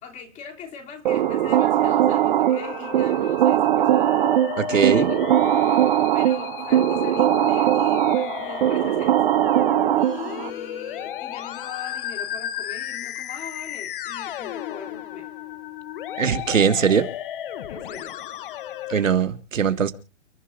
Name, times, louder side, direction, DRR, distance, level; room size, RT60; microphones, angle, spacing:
voice 1, 0.0-4.1 4.7-5.2 6.1-9.6 10.0-15.3 17.7-18.2, left 6 dB, 20° left, 2.8 m, -41 dB
sound 1, 1.1-10.5, right 12 dB, 45° right, 0.6 m, -20 dB
Musical instrument, 1.2-19.2, left 11 dB, 45° left, 0.9 m, -34 dB
voice 2, 4.6-5.1 16.2-17.1 18.9-19.9, right 7 dB, 85° right, 1.8 m, -20 dB
29.5 x 11.5 x 2.5 m
hypercardioid pair, 145°, 38 cm